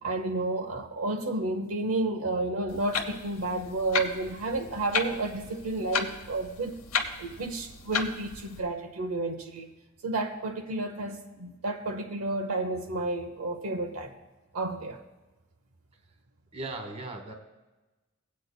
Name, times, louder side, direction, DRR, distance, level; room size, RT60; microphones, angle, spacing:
voice 1, 0.0-6.8 7.2-9.7 10.0-14.1 14.5-15.0, right 2 dB, 80° right, 4 dB, 0.8 m, -31 dB
Clock, 2.7-8.6, left 5 dB, 75° left, 0.8 m, -34 dB
voice 2, 16.5-17.3, right 2 dB, 30° right, 3 dB, 1.2 m, -37 dB
19.0 x 8.4 x 2.2 m, 1.1 s
head